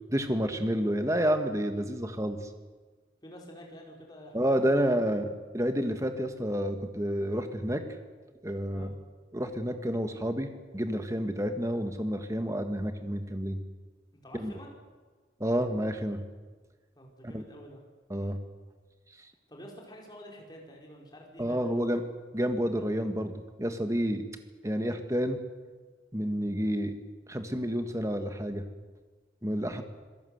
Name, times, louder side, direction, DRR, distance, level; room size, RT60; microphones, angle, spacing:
voice 1, 0.1-2.4 4.3-7.8 8.4-8.9 9.3-13.6 14.3-14.5 15.4-16.2 17.2-17.4 18.1-18.4 21.4-22.0 22.3-24.2 24.6-25.4 26.1-26.9 27.3-28.6 29.4-29.8, equal, 15° right, 7 dB, 1.8 m, -29 dB
voice 2, 3.2-5.3 8.7-8.9 14.2-14.7 16.9-17.8 19.5-21.8, equal, 25° left, -1 dB, 5.1 m, -48 dB
26.5 x 17.5 x 8.1 m, 1.4 s
head